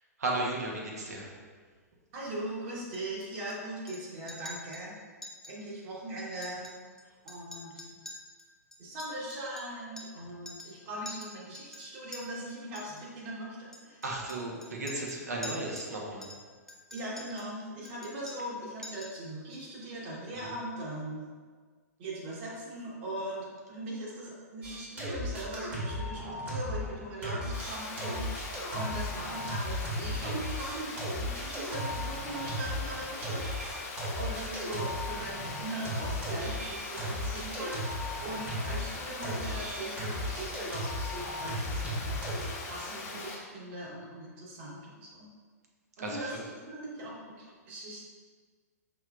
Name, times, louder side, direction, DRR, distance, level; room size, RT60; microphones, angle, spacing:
voice 1, 0.2-1.3 14.0-16.3 20.3-20.5 46.0-46.4, right 2 dB, 70° right, -2 dB, 1.0 m, -35 dB
voice 2, 2.1-4.9 5.5-6.8 7.2-7.8 8.8-14.0 16.9-21.2 22.0-33.8 34.1-45.3 46.0-48.0, right 1 dB, 40° right, -5 dB, 1.4 m, -40 dB
Chink clink, 2.9-3.5 3.9-4.0 4.3-4.8 5.2-5.5 5.8-5.9 6.3-7.0 7.3-10.2 10.5-10.8 11.1-12.2 12.8-13.0 13.7-15.9 16.2-17.5 17.8-18.6 18.8-19.2, left 1 dB, 5° left, 0.4 m, -46 dB
sound 1, 24.6-27.0 27.2-38.9 39.2-42.5, equal, 20° right, 1.1 m, -36 dB
Water, 27.5-43.4, left 3 dB, 35° left, 0.7 m, -41 dB
5.4 x 3.2 x 2.4 m, 1.5 s
figure-of-eight pair, 110°, 9 cm